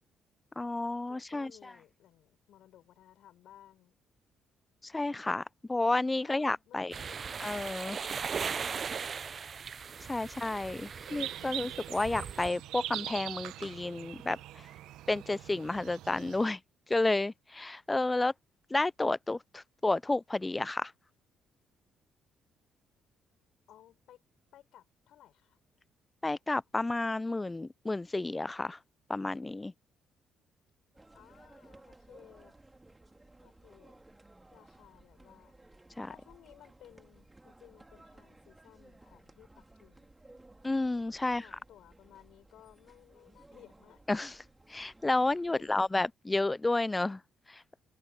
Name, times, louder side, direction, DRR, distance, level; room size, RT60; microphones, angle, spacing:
voice 1, 0.6-1.5 4.8-6.9 7.4-8.0 10.1-14.7 15.1-16.6 16.9-18.3 18.7-20.9 26.2-28.8 29.1-29.7 36.0-36.1 40.6-41.4 44.1-44.3 44.7-47.2 47.5-47.6, left 2 dB, 20° left, 0.4 m, -31 dB
voice 2, 1.1-4.0 6.2-7.6 11.0-11.6 23.7-24.2 24.5-25.6 31.1-32.5 33.4-34.0 34.5-35.6 36.1-40.1 41.2-44.0 45.1-45.9, left 12 dB, 70° left, 7.3 m, -58 dB
sound 1, 6.9-12.5, right 6 dB, 45° right, 0.8 m, -38 dB
sound 2, 11.1-16.5, right 14 dB, 70° right, 1.0 m, -42 dB
sound 3, 30.9-46.1, right 2 dB, 15° right, 2.9 m, -58 dB
hypercardioid pair, 50°, 0 cm